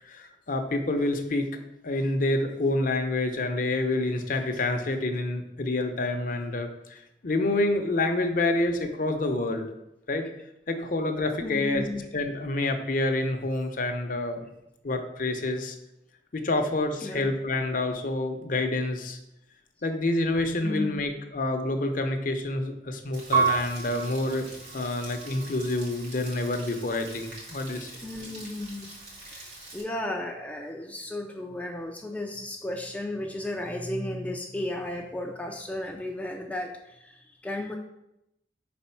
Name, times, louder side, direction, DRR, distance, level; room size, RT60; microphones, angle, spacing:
voice 1, 0.1-1.5 1.8-9.7 10.1-10.3 10.7-11.8 12.1-14.4 14.8-15.8 16.3-19.2 19.8-27.9, left 2 dB, 50° left, 5 dB, 0.7 m, -28 dB
voice 2, 11.4-12.0 17.0-17.3 20.6-21.0 28.0-28.9 29.2-37.8, left 1 dB, 10° left, 0 dB, 0.5 m, -34 dB
Rain, 23.1-29.8, right 2 dB, 85° right, 2.4 m, -45 dB
Piano, 23.3-26.1 26.7-27.4, right 6 dB, 50° right, 1.3 m, -31 dB
5.1 x 4.3 x 5.6 m, 0.86 s
head